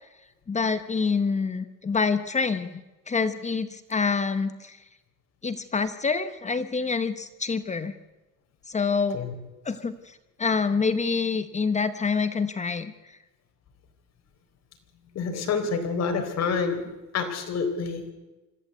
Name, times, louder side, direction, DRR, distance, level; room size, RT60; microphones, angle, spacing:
voice 1, 0.5-4.8 5.4-7.9 8.7-9.2 9.6-12.9, left 5 dB, 20° left, 12 dB, 0.9 m, -27 dB
voice 2, 15.2-16.8 17.1-18.0, left 5 dB, 55° left, 5 dB, 4.0 m, -27 dB
25.5 x 14.0 x 8.0 m, 1.1 s
cardioid pair, 135°, 31 cm